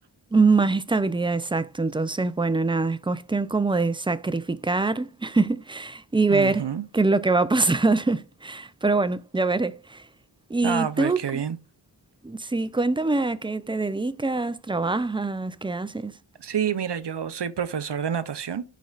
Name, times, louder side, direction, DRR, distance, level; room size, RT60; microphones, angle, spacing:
voice 1, 0.3-6.7 6.9-10.0 10.5-11.4 12.2-16.1, right 3 dB, 10° right, 0.3 m, -24 dB
voice 2, 6.3-6.8 10.6-11.6 16.4-18.6, right 8 dB, 60° right, 0.6 m, -28 dB
11.5 x 4.2 x 2.4 m
wide cardioid pair, 55°, 47 cm